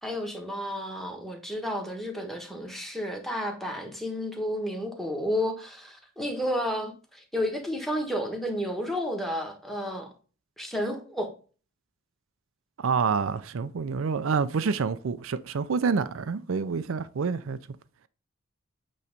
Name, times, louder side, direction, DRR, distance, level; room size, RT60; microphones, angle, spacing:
voice 1, 0.0-10.1 10.6-11.3, equal, ahead, 1.3 m, -31 dB
voice 2, 12.8-17.6, right 5 dB, 70° right, 0.5 m, -27 dB
8.4 x 3.2 x 5.1 m
head